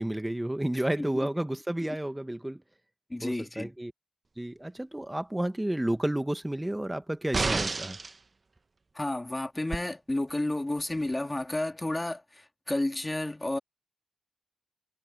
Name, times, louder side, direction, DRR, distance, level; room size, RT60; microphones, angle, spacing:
voice 1, 0.0-2.6 3.2-3.9 4.4-8.0, right 1 dB, 10° right, 1.7 m, -31 dB
voice 2, 3.1-3.7 9.0-12.2 12.7-13.6, left 1 dB, 20° left, 2.2 m, -31 dB
sound 1, 7.3-8.2 9.7-9.8, right 3 dB, 40° right, 1.2 m, -29 dB
cardioid pair, 50°, 0 cm